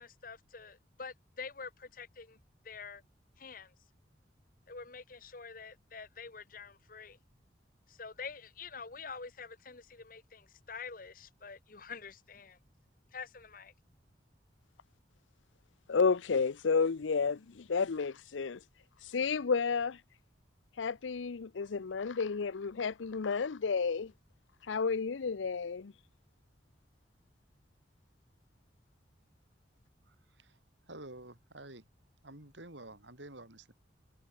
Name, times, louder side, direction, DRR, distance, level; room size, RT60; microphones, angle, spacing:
voice 1, 0.0-2.4 2.6-3.0 3.4-3.7 4.7-7.2 7.9-12.6 13.1-13.7, left 5 dB, 50° left, 1.1 m, -47 dB
voice 2, 15.9-18.6 19.0-20.0 20.8-24.1 24.7-25.9, left 5 dB, 90° left, 0.6 m, -31 dB
voice 3, 30.1-30.6 30.9-31.9 32.2-33.7, right 2 dB, 75° right, 5.1 m, -50 dB
head